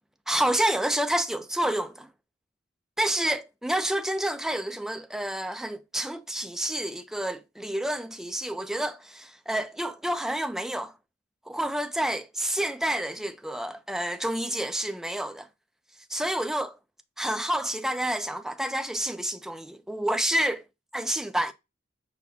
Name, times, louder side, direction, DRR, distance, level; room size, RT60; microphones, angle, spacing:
voice 1, 0.3-2.1 3.0-10.9 11.5-15.5 16.1-16.8 17.2-20.6 20.9-21.5, right 1 dB, ahead, 0.3 m, -29 dB
6.1 x 2.1 x 3.2 m
head